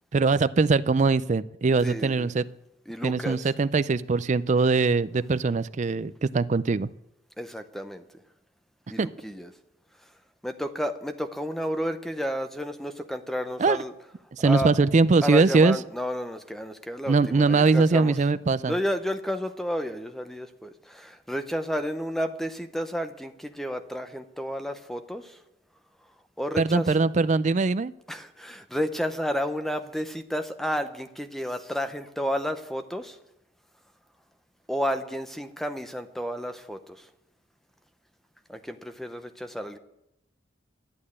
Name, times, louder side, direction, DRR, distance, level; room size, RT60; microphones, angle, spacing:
voice 1, 0.1-2.4 3.0-6.9 9.0-9.1 13.6-13.8 14.3-15.8 17.1-18.7 26.6-27.9, right 4 dB, 40° right, 16 dB, 0.4 m, -22 dB
voice 2, 1.8-2.3 2.9-3.5 7.4-8.1 8.9-9.5 10.4-13.9 14.4-14.7 15.2-18.2 18.6-25.4 26.4-26.9 28.1-33.2 34.7-37.1 38.5-39.8, equal, ahead, 8 dB, 0.7 m, -31 dB
11.5 x 8.7 x 8.6 m, 0.86 s
head